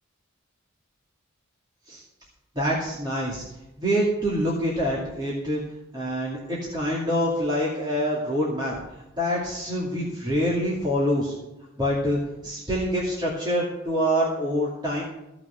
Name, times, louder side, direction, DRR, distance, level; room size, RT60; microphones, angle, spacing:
voice 1, 2.5-3.4 3.8-5.6 5.9-8.7 9.2-11.3 11.8-15.0, equal, 20° right, -6 dB, 2.5 m, -26 dB
16.0 x 6.0 x 8.3 m, 0.94 s
head